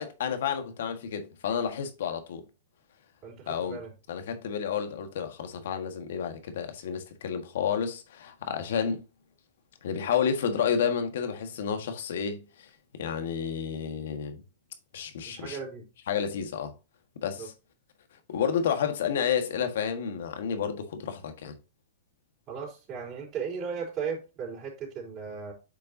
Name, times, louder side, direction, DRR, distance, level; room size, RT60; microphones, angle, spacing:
voice 1, 0.0-2.4 3.5-3.8 4.1-9.0 9.8-14.4 14.9-15.6 16.1-16.7 17.1-17.5 18.3-21.5, left 7 dB, 70° left, 1.6 m, -30 dB
voice 2, 3.2-3.9 15.3-15.8 17.4-17.5 22.5-25.5, right 6 dB, 30° right, 3.9 m, -36 dB
8.7 x 5.4 x 2.8 m
hypercardioid pair, 125°, 0 cm